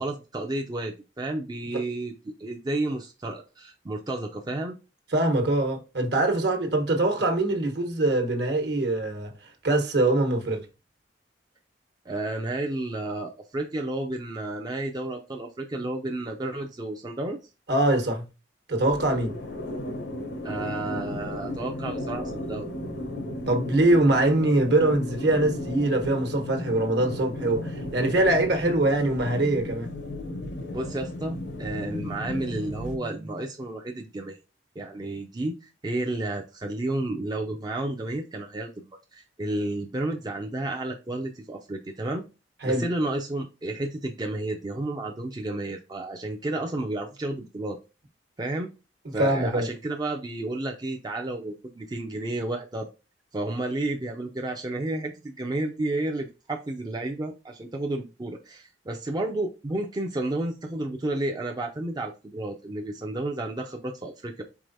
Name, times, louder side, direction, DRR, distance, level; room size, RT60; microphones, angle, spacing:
voice 1, 0.0-4.8 12.1-17.4 20.4-22.7 30.7-34.4 34.8-42.2 42.6-47.8 48.4-48.7 49.1-52.9 53.3-64.4, right 2 dB, 20° right, 0.4 m, -31 dB
voice 2, 5.1-9.3 9.6-10.6 17.7-18.2 18.7-19.4 23.5-29.9 42.6-42.8 49.1-49.7, right 2 dB, 65° right, 1.1 m, -23 dB
sound 1, 18.8-33.0, left 1 dB, 70° left, 0.8 m, -35 dB
4.8 x 3.8 x 2.6 m
head